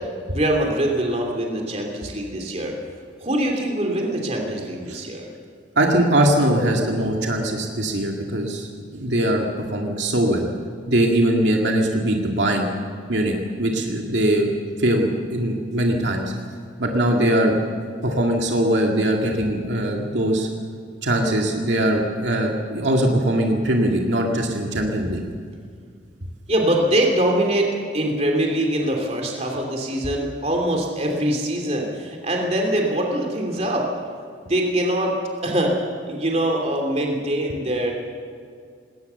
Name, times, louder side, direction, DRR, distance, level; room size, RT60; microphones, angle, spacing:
voice 1, 0.3-2.7 3.2-5.3 26.5-33.9 34.4-35.1 35.4-35.7 36.0-37.9, right 1 dB, 35° right, 0 dB, 2.9 m, -23 dB
voice 2, 5.8-9.5 9.7-10.5 10.9-12.7 13.1-14.5 14.8-16.3 16.8-17.6 18.0-20.5 21.0-25.2, right 1 dB, 75° right, 0 dB, 2.2 m, -21 dB
19.5 x 19.0 x 7.0 m, 2.2 s
head